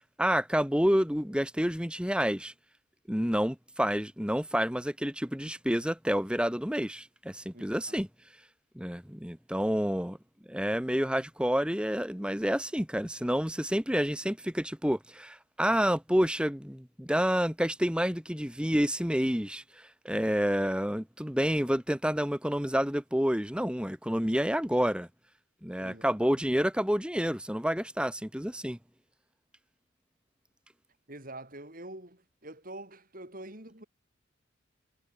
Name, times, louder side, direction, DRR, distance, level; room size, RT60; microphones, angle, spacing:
voice 1, 0.2-2.5 3.1-8.1 8.7-10.2 10.5-25.1 25.6-28.8, equal, 5° right, 2.5 m, -29 dB
voice 2, 7.5-8.0 25.8-26.2 31.1-33.8, right 1 dB, 45° right, 5.6 m, -46 dB
head